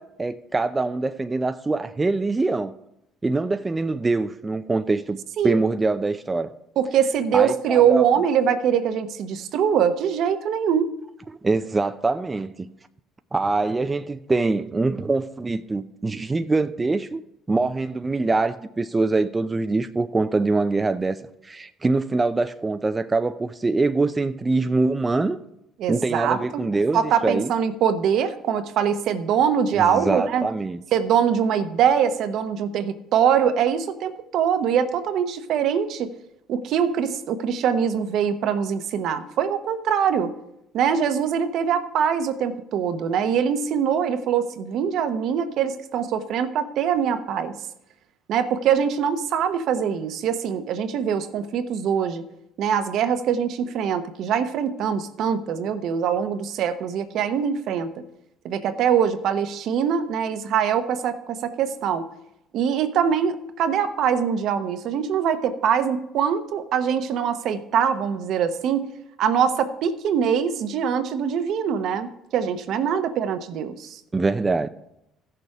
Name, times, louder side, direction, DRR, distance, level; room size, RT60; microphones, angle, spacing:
voice 1, 0.0-2.7 3.2-5.2 5.4-6.5 7.3-8.1 11.4-12.7 13.3-17.2 17.5-21.2 21.4-25.4 25.9-27.5 29.7-30.8 72.9-73.0 74.1-74.7, right 3 dB, 20° right, 0.6 m, -24 dB
voice 2, 6.8-10.9 25.8-26.6 26.9-30.4 30.9-36.1 36.5-40.3 40.7-47.5 48.3-52.3 52.6-58.0 58.4-62.1 62.5-68.9 69.2-74.0, right 8 dB, 65° right, 1.0 m, -23 dB
14.5 x 6.8 x 4.8 m
supercardioid pair, 75°, 0 cm